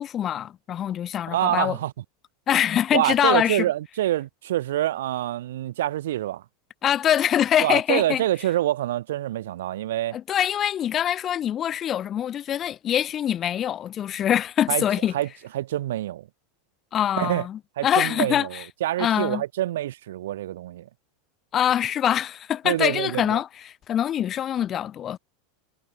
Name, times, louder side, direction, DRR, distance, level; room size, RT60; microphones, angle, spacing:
voice 1, 0.0-1.8 2.5-3.6 6.8-8.2 10.1-15.1 16.9-18.6 19.0-19.4 21.5-25.2, left 10 dB, 25° left, 0.4 m, -24 dB
voice 2, 1.3-1.9 2.9-6.4 7.6-10.2 14.7-14.8 15.1-15.3 15.5-16.3 17.2-17.5 17.8-20.9 22.6-23.4, right 13 dB, 90° right, 2.4 m, -26 dB
supercardioid pair, 160°, 0 cm